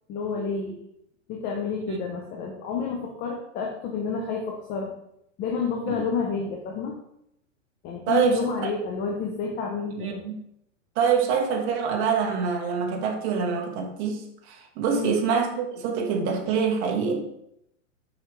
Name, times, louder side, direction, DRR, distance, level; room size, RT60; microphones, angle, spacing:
voice 1, 0.1-0.8 1.3-4.9 5.4-7.0 7.8-10.3 14.9-15.2, left 5 dB, 25° left, 2 dB, 0.7 m, -30 dB
voice 2, 8.1-8.5 10.0-10.4 10.9-17.2, right 6 dB, 35° right, 1 dB, 1.2 m, -25 dB
6.7 x 4.8 x 3.2 m, 0.78 s
hypercardioid pair, 140°, 39 cm